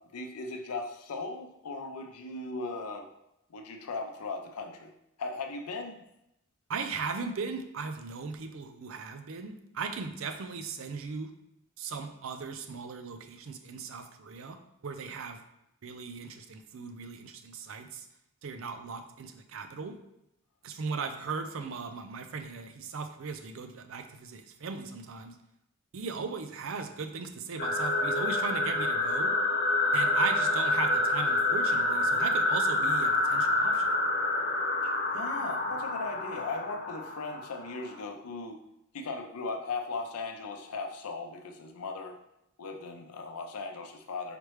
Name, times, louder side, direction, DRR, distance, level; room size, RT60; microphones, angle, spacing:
voice 1, 0.0-3.1 3.5-4.9 5.2-6.0 34.8-38.6 38.9-42.2 42.6-44.4, left 3 dB, 90° left, 5 dB, 0.6 m, -38 dB
voice 2, 6.7-11.3 11.8-15.4 15.8-18.1 18.4-20.0 20.6-25.3 25.9-29.3 29.9-33.9, right 5 dB, 65° right, 8 dB, 0.4 m, -38 dB
sound 1, 27.6-37.9, left 2 dB, 40° left, 0.6 m, -27 dB
4.9 x 3.1 x 3.1 m, 0.82 s
head